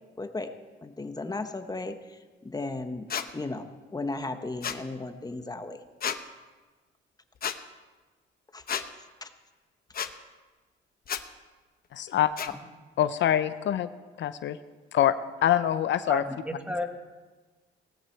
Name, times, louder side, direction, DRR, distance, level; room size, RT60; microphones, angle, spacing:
voice 1, 0.2-0.5 0.8-3.1 3.3-5.8 8.5-8.6 9.0-9.3, left 2 dB, 20° left, 8 dB, 1.2 m, -36 dB
sound 1, 3.1-3.3 4.6-4.8 6.0-6.2 7.4-7.6 8.7-8.9 9.9-10.1 11.1-11.2 12.4-12.5, left 8 dB, 50° left, 1.0 m, -31 dB
voice 2, 11.9-12.3 13.0-13.9 14.2-14.6 14.9-15.1 15.4-16.2, left 11 dB, 65° left, 12 dB, 0.6 m, -24 dB
voice 3, 16.1-16.9, left 1 dB, 5° right, 5 dB, 1.8 m, -32 dB
18.0 x 13.5 x 4.6 m, 1.3 s
cardioid pair, 90°, 20 cm